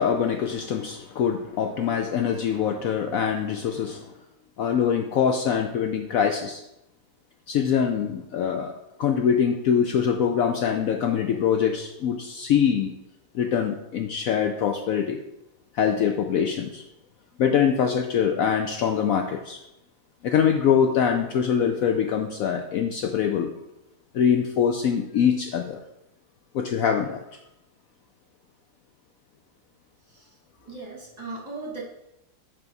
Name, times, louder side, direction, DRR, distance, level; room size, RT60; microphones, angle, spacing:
voice 1, 0.0-4.1 4.6-6.6 7.5-8.7 9.0-12.9 13.3-15.2 15.7-16.8 17.4-19.6 20.2-23.5 24.1-25.8 26.5-27.2, left 7 dB, 70° left, 5 dB, 0.9 m, -23 dB
voice 2, 30.1-30.4 30.7-31.8, right 3 dB, 25° right, -3 dB, 1.4 m, -37 dB
9.5 x 3.5 x 5.3 m, 0.88 s
omnidirectional pair, 1.8 m